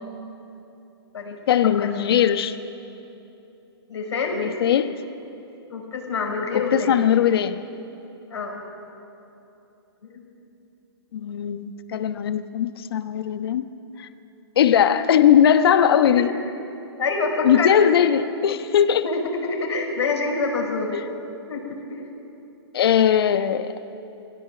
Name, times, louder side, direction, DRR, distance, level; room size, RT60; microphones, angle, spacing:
voice 1, 1.5-2.6 4.3-4.9 6.5-7.6 11.1-13.7 14.0-14.1 14.6-16.3 17.4-19.0 20.9-21.0 22.7-23.7, left 9 dB, 60° left, 11 dB, 1.1 m, -19 dB
voice 2, 3.9-4.4 5.7-7.0 8.3-8.6 10.0-10.2 16.1-16.2 17.0-17.8 19.0-21.0 21.5-22.1, left 3 dB, 90° left, 0 dB, 5.5 m, -26 dB
21.5 x 16.5 x 7.8 m, 2.9 s
hypercardioid pair, 155°, 14 cm